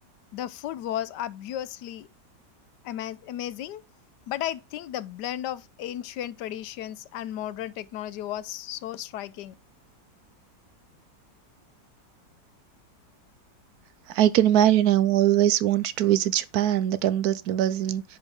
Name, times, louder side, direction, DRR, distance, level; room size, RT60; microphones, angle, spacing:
voice 1, 0.3-2.1 2.8-3.8 4.3-9.5, left 11 dB, 75° left, 1.2 m, -34 dB
voice 2, 14.1-18.0, right 12 dB, 70° right, 1.0 m, -21 dB
9.7 x 5.1 x 3.6 m
omnidirectional pair, 2.0 m